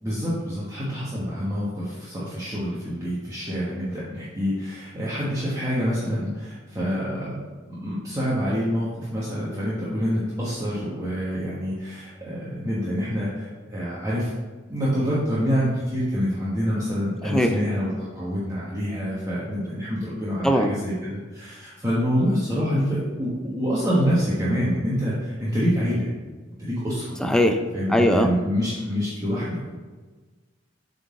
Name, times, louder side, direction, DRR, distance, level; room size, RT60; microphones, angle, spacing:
voice 1, 0.0-7.4 7.7-14.3 14.7-26.1 26.6-27.2 27.7-29.7, equal, 20° right, -9 dB, 1.2 m, -26 dB
voice 2, 27.2-27.6 27.9-28.3, equal, 5° left, 5 dB, 0.4 m, -19 dB
7.6 x 4.0 x 3.7 m, 1.3 s
head